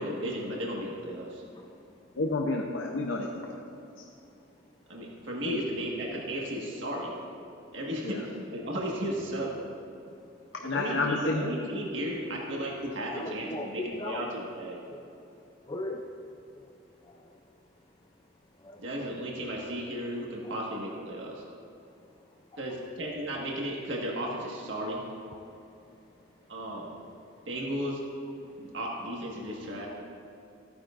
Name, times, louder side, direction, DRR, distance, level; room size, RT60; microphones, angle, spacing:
voice 1, 0.0-1.4 4.9-7.1 7.7-9.5 10.7-14.8 18.8-21.4 22.6-25.0 26.5-26.9 27.5-28.0 28.6-29.9, equal, 65° right, -2 dB, 1.6 m, -34 dB
voice 2, 2.2-3.6 5.4-5.6 8.0-8.2 10.5-11.5, left 2 dB, 70° left, 0 dB, 0.7 m, -30 dB
voice 3, 13.1-14.3 14.9-15.1 15.7-16.1 16.5-16.7 17.0-17.3 18.6-18.8 22.5-22.6 25.3-25.6 26.7-26.8 28.4-28.5, left 2 dB, 25° left, 1 dB, 0.5 m, -39 dB
14.5 x 9.4 x 2.5 m, 2.8 s
head